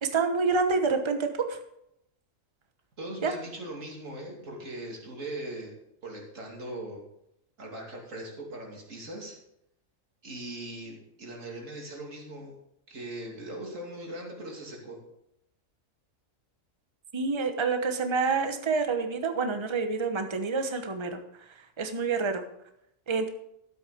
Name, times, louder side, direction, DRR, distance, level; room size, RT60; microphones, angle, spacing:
voice 1, 0.0-1.6 3.2-3.3 17.1-21.2 21.8-22.4 23.1-23.3, right 4 dB, 25° right, 7 dB, 1.0 m, -27 dB
voice 2, 3.0-5.8 6.0-7.0 7.6-9.4 10.2-12.5 12.9-15.0, right 1 dB, 70° right, 0 dB, 3.0 m, -40 dB
12.5 x 8.2 x 5.1 m, 0.79 s
omnidirectional pair, 1.4 m